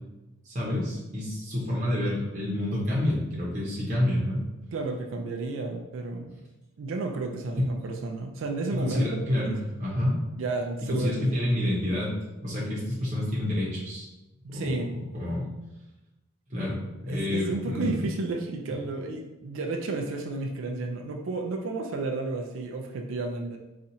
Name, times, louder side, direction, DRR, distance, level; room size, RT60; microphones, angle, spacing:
voice 1, 0.4-4.4 7.6-7.7 8.7-9.5 9.8-10.2 10.8-12.1 12.4-14.1 14.5-14.8 15.1-15.5 16.5-18.1, left 1 dB, 35° right, -5 dB, 0.8 m, -28 dB
voice 2, 4.7-6.4 6.8-9.6 10.4-11.5 14.4-14.9 17.1-23.6, right 3 dB, 60° right, 3 dB, 0.3 m, -32 dB
4.1 x 2.4 x 2.7 m, 1.0 s
head